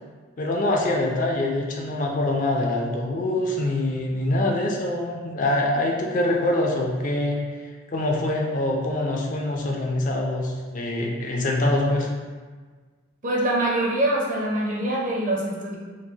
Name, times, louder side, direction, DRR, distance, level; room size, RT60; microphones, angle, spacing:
voice 1, 0.4-7.4 7.9-12.1, left 1 dB, 35° left, 0 dB, 0.3 m, -24 dB
voice 2, 13.2-15.8, right 1 dB, 35° right, -3 dB, 0.6 m, -24 dB
4.6 x 2.1 x 2.7 m, 1.5 s
head